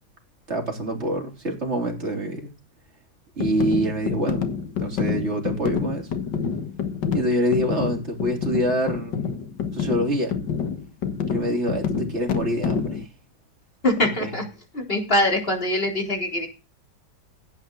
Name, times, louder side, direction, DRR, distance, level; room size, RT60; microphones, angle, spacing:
voice 1, 0.5-2.5 3.4-4.4 4.8-6.1 7.1-9.3 9.7-10.4 11.3-13.1 14.0-14.3, right 1 dB, 35° right, 1 dB, 4.0 m, -26 dB
sound 1, 3.4-13.1, left 6 dB, 75° left, 2.1 m, -28 dB
voice 2, 13.8-14.4 14.7-16.5, left 1 dB, 30° left, 2 dB, 3.9 m, -23 dB
16.5 x 9.1 x 3.9 m, 0.31 s
omnidirectional pair, 2.0 m